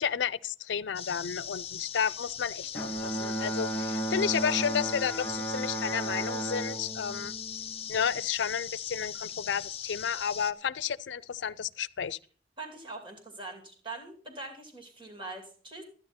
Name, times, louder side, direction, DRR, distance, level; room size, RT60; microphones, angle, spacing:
voice 1, 0.0-7.3 7.9-12.2, left 7 dB, 90° left, 0.5 m, -32 dB
sound 1, 0.9-10.5, left 9 dB, 35° left, 0.7 m, -40 dB
Bowed string instrument, 2.7-8.2, right 1 dB, 15° left, 1.0 m, -34 dB
voice 2, 12.6-15.8, right 2 dB, 30° right, 2.5 m, -42 dB
13.5 x 9.9 x 4.2 m
head